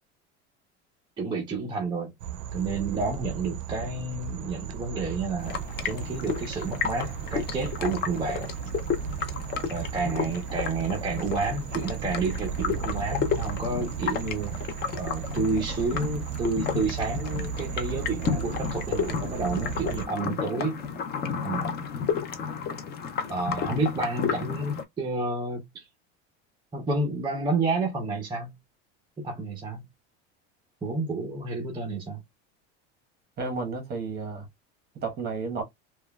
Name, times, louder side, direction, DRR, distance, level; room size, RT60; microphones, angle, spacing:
voice 1, 1.2-2.1 2.5-5.6 5.8-8.5 9.7-14.5 14.9-20.7 21.4-21.7 23.3-25.9 26.7-28.5 29.2-29.8 30.8-32.2, right 3 dB, 15° right, 0.6 m, -30 dB
sound 1, 2.2-20.1, right 8 dB, 60° right, 0.5 m, -35 dB
sound 2, 5.4-24.8, left 6 dB, 30° left, 0.5 m, -32 dB
voice 2, 33.4-34.4 34.9-35.6, right 4 dB, 30° right, 1.1 m, -32 dB
3.0 x 2.3 x 2.3 m
cardioid pair, 140°, 32 cm